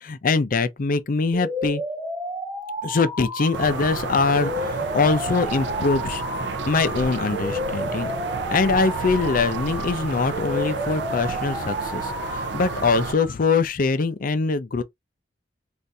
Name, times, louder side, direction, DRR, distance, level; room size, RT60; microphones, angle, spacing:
voice 1, 0.0-1.8 2.8-6.2 6.7-8.1 8.5-14.8, left 4 dB, 50° left, 0.5 m, -23 dB
sound 1, 1.3-13.3, equal, 15° right, 0.6 m, -32 dB
sound 2, 3.5-13.1, right 3 dB, 75° right, 0.5 m, -31 dB
2.7 x 2.5 x 3.2 m
head